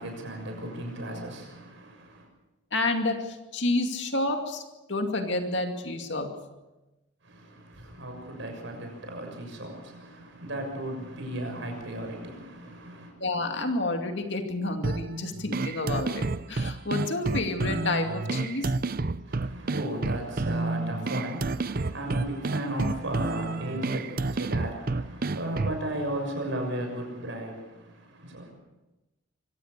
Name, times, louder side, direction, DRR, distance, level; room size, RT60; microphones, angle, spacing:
voice 1, 0.0-2.3 7.2-13.1 19.2-28.5, right 1 dB, 60° right, 6.6 m, -35 dB
voice 2, 2.7-4.6 4.9-6.3 13.2-18.7, left 2 dB, 55° left, 2.5 m, -29 dB
sound 1, 14.8-25.8, right 3 dB, 45° right, 0.6 m, -30 dB
25.0 x 16.5 x 6.8 m
head